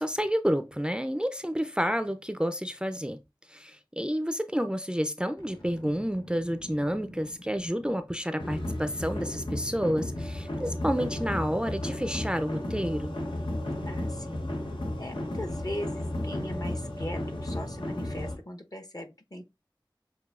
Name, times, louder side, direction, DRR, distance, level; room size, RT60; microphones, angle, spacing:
voice 1, 0.0-3.2 3.5-13.1, equal, 10° right, 0.4 m, -30 dB
Boom, 5.4-8.6, equal, 65° left, 1.6 m, -48 dB
sound 1, 8.4-18.4, left 1 dB, 80° left, 1.0 m, -33 dB
voice 2, 13.9-14.5 15.0-19.4, left 1 dB, 50° left, 0.9 m, -39 dB
6.6 x 2.7 x 2.4 m
wide cardioid pair, 40°, 8 cm